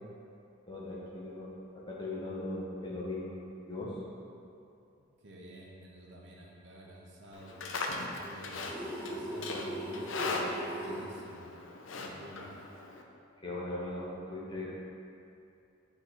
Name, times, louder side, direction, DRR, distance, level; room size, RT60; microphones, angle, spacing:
voice 1, 0.7-3.4 3.7-4.0 13.4-14.7, left 2 dB, 25° left, -6 dB, 1.1 m, -39 dB
voice 2, 5.2-7.6 8.0-8.8 9.1-11.5 12.0-12.5, right 1 dB, 65° right, -3 dB, 1.0 m, -50 dB
Livestock farm animals working animals, 7.3-13.0, left 3 dB, 85° left, 0.6 m, -39 dB
sound 1, 8.7-11.1, right 1 dB, 10° right, 1.2 m, -39 dB
8.5 x 3.4 x 4.3 m, 2.7 s
head